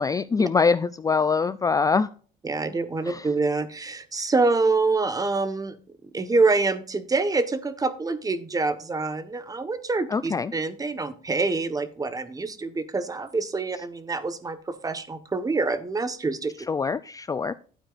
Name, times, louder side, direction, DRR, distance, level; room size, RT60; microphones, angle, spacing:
voice 1, 0.0-2.1 3.0-3.3 10.1-10.5 16.7-17.5, left 5 dB, 20° left, 14 dB, 0.4 m, -24 dB
voice 2, 2.4-5.8 6.1-16.5, right 3 dB, 20° right, 11 dB, 1.2 m, -26 dB
12.0 x 8.9 x 2.5 m, 0.42 s
cardioid pair, 110°, 17 cm